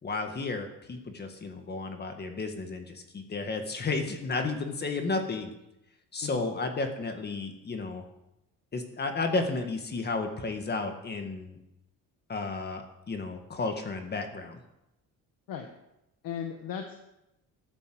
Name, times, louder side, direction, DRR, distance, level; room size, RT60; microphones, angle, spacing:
voice 1, 0.0-5.5 6.1-8.0 8.7-11.6 12.3-14.6, left 3 dB, 30° left, 5 dB, 1.8 m, -33 dB
voice 2, 16.2-17.0, left 8 dB, 75° left, 5 dB, 1.5 m, -36 dB
13.0 x 9.9 x 7.9 m, 0.90 s
cardioid pair, 150°, 34 cm